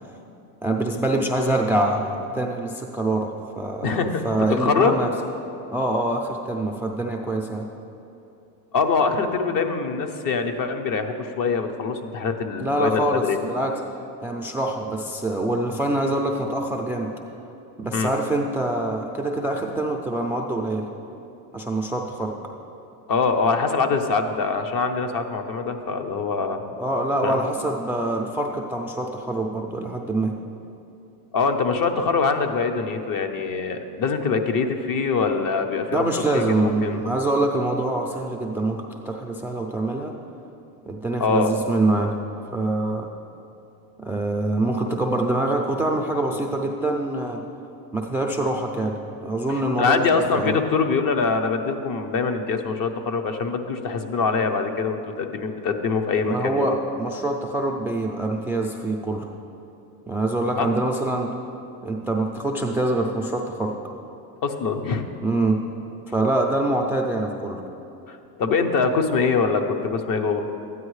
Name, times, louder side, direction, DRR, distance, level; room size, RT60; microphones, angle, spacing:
voice 1, 0.6-5.1 5.7-7.7 12.6-13.7 14.2-17.1 17.8-20.9 21.5-22.4 26.8-30.3 35.9-40.1 40.9-42.1 42.5-43.1 44.0-47.4 47.9-50.1 50.3-50.5 56.2-59.3 60.1-61.3 61.8-63.8 65.2-65.6 66.1-67.6, right 2 dB, 5° right, 1 dB, 0.4 m, -25 dB
voice 2, 3.8-4.2 4.5-4.9 8.7-13.4 17.9-18.1 23.1-26.6 27.2-27.4 31.3-36.0 36.3-37.0 41.2-41.5 49.8-56.8 60.6-60.7 64.4-65.1 68.1-70.4, left 4 dB, 45° left, 6 dB, 0.9 m, -23 dB
12.5 x 9.3 x 3.2 m, 2.8 s
supercardioid pair, 100°, 47 cm